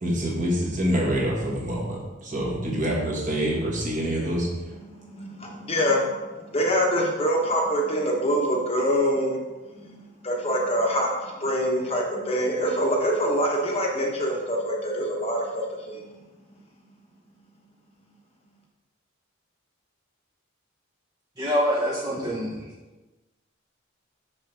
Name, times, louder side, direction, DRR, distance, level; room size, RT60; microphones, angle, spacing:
voice 1, 0.0-4.5, equal, 40° right, -3 dB, 1.5 m, -26 dB
voice 2, 4.8-9.4 9.8-16.0, equal, 30° left, -1 dB, 1.0 m, -25 dB
voice 3, 21.4-22.6, equal, 20° right, -4 dB, 0.7 m, -25 dB
6.3 x 5.9 x 3.3 m, 1.2 s
head